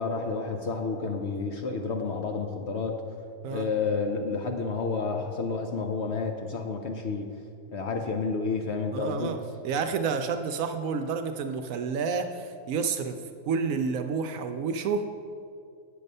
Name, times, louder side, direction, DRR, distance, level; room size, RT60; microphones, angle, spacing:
voice 1, 0.0-3.0 3.5-7.3 7.7-9.4, left 4 dB, 60° left, 4 dB, 0.8 m, -30 dB
voice 2, 8.9-9.4 9.6-13.2 13.5-15.0, right 5 dB, 70° right, 7 dB, 0.9 m, -29 dB
8.7 x 6.6 x 5.4 m, 2.4 s
omnidirectional pair, 1.6 m